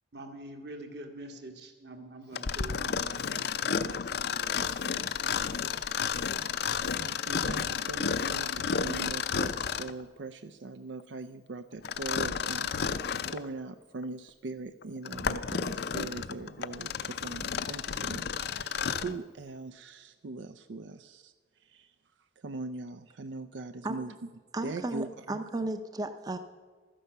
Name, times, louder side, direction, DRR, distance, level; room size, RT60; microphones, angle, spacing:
voice 1, 0.1-5.0, right 1 dB, 65° right, 4 dB, 1.8 m, -46 dB
Mechanisms, 2.3-10.0 11.8-13.5 14.0-14.1 14.8-19.2, left 6 dB, 60° left, 0.5 m, -32 dB
voice 2, 6.5-21.3 21.6-21.9 22.4-24.1 24.6-25.4, right 3 dB, 85° right, 11 dB, 0.5 m, -41 dB
voice 3, 24.5-26.4, right 2 dB, 20° right, 9 dB, 0.5 m, -34 dB
12.5 x 10.0 x 6.8 m, 1.5 s
head